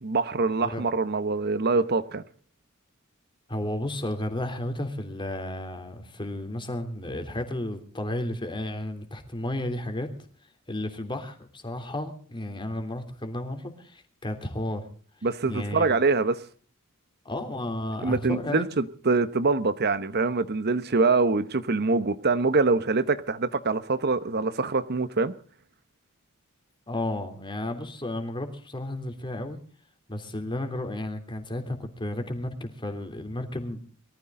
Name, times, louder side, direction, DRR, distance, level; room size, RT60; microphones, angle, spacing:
voice 1, 0.0-2.2 15.2-16.4 18.0-25.3, right 3 dB, 50° right, 0.9 m, -24 dB
voice 2, 3.5-10.1 10.7-14.8 15.5-15.9 17.2-18.7 26.9-29.6 30.1-33.8, left 1 dB, 20° left, 3.2 m, -33 dB
23.0 x 14.5 x 3.8 m
head